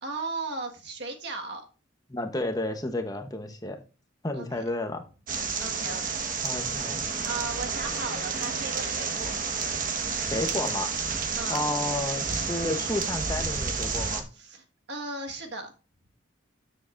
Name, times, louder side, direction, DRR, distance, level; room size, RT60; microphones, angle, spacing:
voice 1, 0.0-1.7 4.3-4.7 5.6-6.5 7.2-9.4 11.4-11.6 14.3-15.7, right 3 dB, 60° right, 3 dB, 1.6 m, -36 dB
voice 2, 2.1-3.8 4.2-5.0 6.4-7.0 10.2-10.9 11.5-14.3, left 2 dB, 20° left, 5 dB, 0.9 m, -31 dB
sound 1, 5.3-14.2, right 5 dB, 45° right, 1.3 m, -30 dB
13.0 x 7.4 x 2.5 m, 0.34 s
head